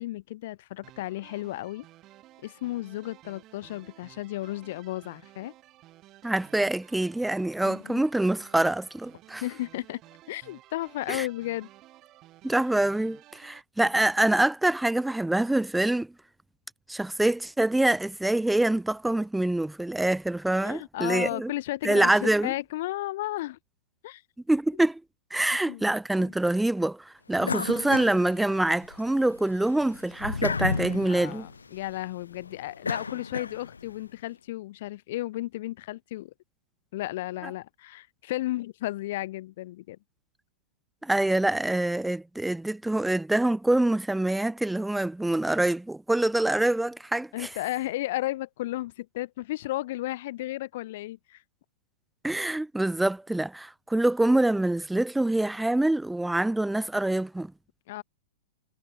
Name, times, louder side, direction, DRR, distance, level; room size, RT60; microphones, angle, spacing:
voice 1, 0.0-1.9 2.4-5.5 7.6-8.0 9.4-10.0 10.3-11.7 20.6-23.6 24.0-24.2 25.7-25.9 26.2-26.3 27.4-27.7 31.1-36.3 36.9-40.0 47.3-51.4 57.9-58.0, left 16 dB, 60° left, 0.8 m, -34 dB
sound 1, 0.8-13.6, right 16 dB, 35° right, 6.6 m, -54 dB
voice 2, 6.2-9.4 11.1-11.3 12.4-16.1 16.9-21.5 21.8-22.5 24.5-25.0 25.3-31.5 41.0-47.5 52.2-57.5, right 1 dB, 5° right, 0.3 m, -25 dB
sound 2, 27.4-29.0 29.4-34.0, left 5 dB, 90° left, 0.8 m, -33 dB
hypercardioid pair, 110°, 0 cm